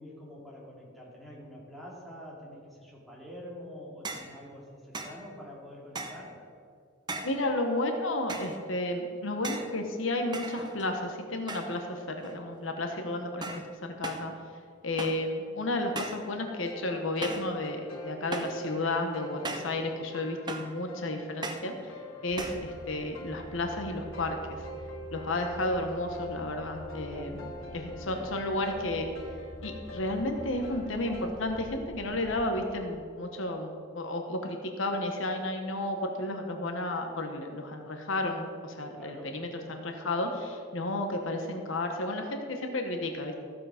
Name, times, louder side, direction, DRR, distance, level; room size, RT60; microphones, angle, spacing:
voice 1, 0.0-6.4 27.1-28.6 39.0-39.4, equal, ahead, -5 dB, 2.5 m, -46 dB
sound 1, 4.1-4.4 4.9-5.2 6.0-6.3 7.1-7.5 8.3-8.6 9.4-9.8 10.3-11.0 11.5-11.9 12.2-12.6 13.4-13.7 14.0-14.3 15.0-15.3 16.0-16.3 17.2-17.5 18.3-18.6 19.5-19.8 20.5-20.8 21.4-21.7 22.4-22.7, right 3 dB, 20° right, 0.8 m, -38 dB
voice 2, 7.2-14.3 14.8-21.9 22.2-24.6 25.1-29.1 29.6-43.4, left 1 dB, 70° left, 4 dB, 1.1 m, -32 dB
sound 2, 16.4-31.3, left 1 dB, 85° left, 1.5 m, -45 dB
sound 3, 22.3-32.5, equal, 65° right, 1.4 m, -47 dB
14.5 x 7.5 x 5.0 m, 2.3 s
head